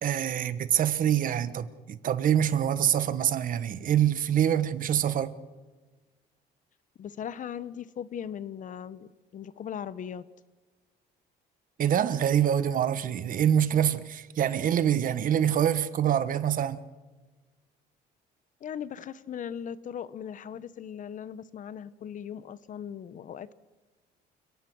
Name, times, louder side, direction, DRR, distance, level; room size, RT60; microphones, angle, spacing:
voice 1, 0.0-5.3 11.8-16.8, right 10 dB, 55° right, 1.3 m, -25 dB
voice 2, 7.0-10.2 18.6-23.5, left 8 dB, 50° left, 1.0 m, -38 dB
29.0 x 18.0 x 6.2 m
cardioid pair, 110°, 17 cm